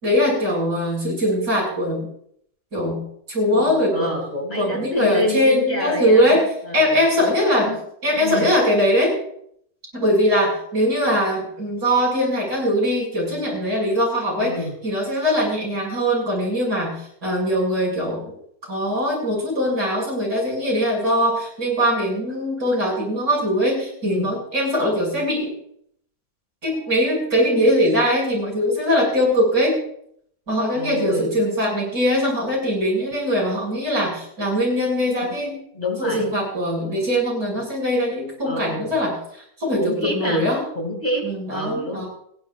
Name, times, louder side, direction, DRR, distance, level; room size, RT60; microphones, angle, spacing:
voice 1, 0.0-2.1 2.7-3.0 3.3-4.2 4.5-6.5 6.7-7.7 8.0-9.2 9.9-18.4 18.7-25.5 26.6-29.8 30.5-35.6 36.0-39.1 39.6-40.6 41.2-42.1, equal, 80° right, -3 dB, 7.2 m, -21 dB
voice 2, 3.5-7.3 7.7-7.8 8.2-8.5 14.4-14.8 24.0-24.3 30.7-31.3 35.2-35.3 35.7-36.3 36.8-37.0 38.4-39.0 39.8-40.4 40.8-42.0, left 1 dB, 25° left, 2 dB, 2.7 m, -28 dB
29.5 x 10.5 x 2.5 m, 0.68 s
omnidirectional pair, 1.6 m